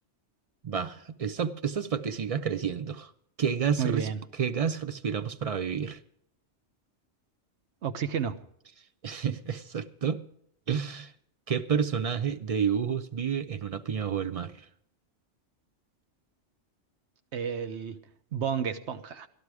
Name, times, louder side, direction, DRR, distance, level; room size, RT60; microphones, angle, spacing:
voice 1, 0.6-3.1 3.4-6.0 9.0-10.2 10.7-11.1 11.5-14.7, right 7 dB, 50° right, 0.4 m, -30 dB
voice 2, 3.8-4.2 7.8-8.4 17.3-18.0 18.3-19.3, right 7 dB, 70° right, 1.1 m, -31 dB
13.5 x 12.0 x 4.8 m
omnidirectional pair, 1.2 m